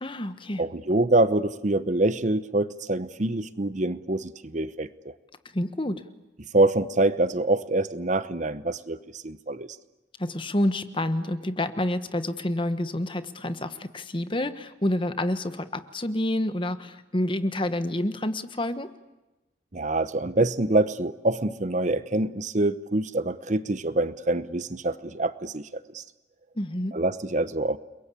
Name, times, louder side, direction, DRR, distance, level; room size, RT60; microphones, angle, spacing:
voice 1, 0.0-0.6 5.5-6.0 10.2-18.9 26.5-27.0, left 1 dB, 25° left, 11 dB, 1.3 m, -28 dB
voice 2, 0.6-5.1 6.5-9.7 19.7-26.0 26.9-27.8, right 2 dB, 40° right, 14 dB, 0.9 m, -25 dB
30.0 x 22.5 x 8.5 m, 1.0 s
head